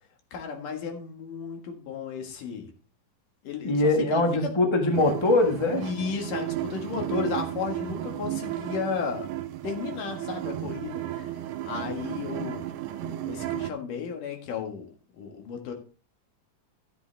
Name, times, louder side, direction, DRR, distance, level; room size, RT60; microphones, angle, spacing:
voice 1, 0.3-2.7 3.4-4.5 5.7-9.3 9.6-11.4 11.6-12.7 13.0-14.9 15.1-15.7, left 6 dB, 85° left, 3 dB, 3.3 m, -34 dB
voice 2, 3.6-5.8, left 2 dB, 25° left, 3 dB, 0.5 m, -22 dB
sound 1, 4.9-13.7, right 13 dB, 85° right, 2.1 m, -34 dB
13.0 x 7.7 x 3.4 m, 0.38 s
omnidirectional pair, 3.7 m